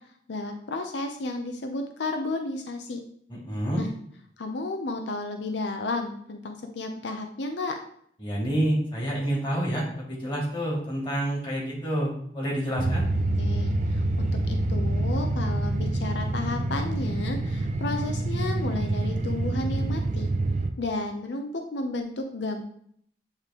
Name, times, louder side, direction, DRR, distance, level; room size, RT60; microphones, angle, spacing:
voice 1, 0.3-3.0 3.8-3.9 4.4-7.8 13.4-13.8 14.2-20.3 20.8-22.6, left 2 dB, 90° left, 5 dB, 0.6 m, -32 dB
voice 2, 3.3-3.8 8.2-13.0, right 1 dB, 30° left, -4 dB, 2.5 m, -28 dB
sound 1, 12.8-20.7, right 2 dB, 45° right, 0.5 m, -27 dB
8.5 x 3.2 x 3.7 m, 0.66 s
head